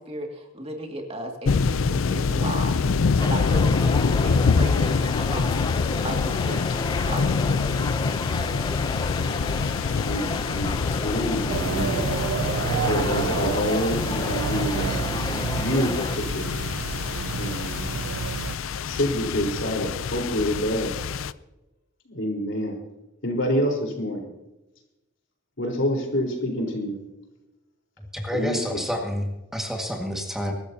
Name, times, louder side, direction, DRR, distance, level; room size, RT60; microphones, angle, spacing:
voice 1, 0.0-2.8 3.2-5.6 6.0-7.8 8.4-8.9, right 1 dB, 30° right, 2 dB, 2.2 m, -36 dB
sound 1, 1.5-21.3, left 5 dB, 80° left, 0.5 m, -26 dB
sound 2, 3.2-16.2, left 3 dB, 20° left, 0.5 m, -32 dB
voice 2, 10.0-12.0 12.9-15.1 15.5-16.5 17.4-17.8 18.9-21.0 22.0-22.8 23.2-24.3 25.6-27.0 28.3-28.8, equal, 65° left, 0 dB, 4.2 m, -27 dB
sound 3, 11.5-18.6, right 7 dB, 75° right, 0.4 m, -30 dB
voice 3, 28.1-30.5, equal, ahead, 1 dB, 1.8 m, -29 dB
24.0 x 13.5 x 2.8 m, 0.98 s
head